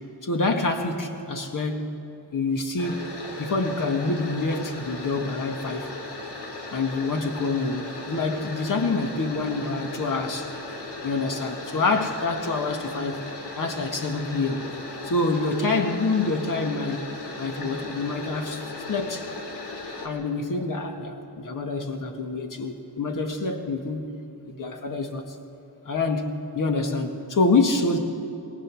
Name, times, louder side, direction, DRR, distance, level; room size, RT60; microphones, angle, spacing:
voice 1, 0.2-2.0 2.3-3.1 3.4-5.9 6.7-10.5 11.0-13.2 13.6-14.7 15.0-17.1 17.4-19.3 20.0-24.2 24.5-25.3 25.8-28.0, left 3 dB, 50° left, 4 dB, 1.9 m, -26 dB
sound 1, 2.8-20.1, left 3 dB, 75° left, 3.0 m, -37 dB
22.5 x 18.0 x 6.3 m, 2.8 s
cardioid pair, 100°, 41 cm